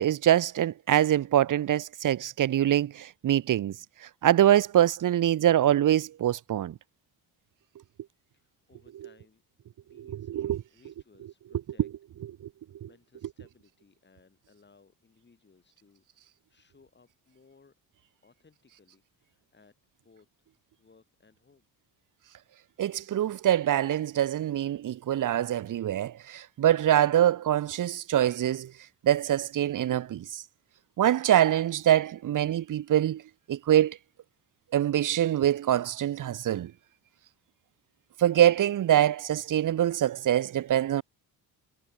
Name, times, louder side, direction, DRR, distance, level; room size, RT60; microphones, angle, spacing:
voice 1, 0.0-3.7 4.2-6.7 10.0-10.6 22.8-28.7 29.0-30.4 31.0-33.2 33.5-34.0 34.7-36.7 38.2-41.0, right 11 dB, 55° right, 1.0 m, -24 dB
voice 2, 8.3-9.4 9.8-10.3 10.7-11.9 12.8-17.7 18.2-20.5 20.8-21.6 36.7-36.8, left 4 dB, 25° left, 7.4 m, -62 dB
cardioid pair, 110°, 39 cm